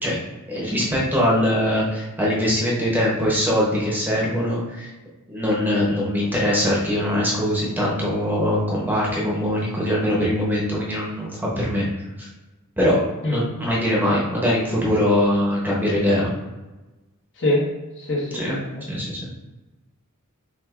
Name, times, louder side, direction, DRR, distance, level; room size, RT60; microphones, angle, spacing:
voice 1, 0.5-4.9 5.3-11.9 12.2-12.3 12.8-16.3 18.3-18.6 18.9-19.2, equal, 10° right, -5 dB, 0.8 m, -22 dB
voice 2, 17.4-17.7 18.0-18.8, left 1 dB, 55° left, -3 dB, 1.2 m, -24 dB
6.2 x 2.5 x 2.4 m, 1.1 s
head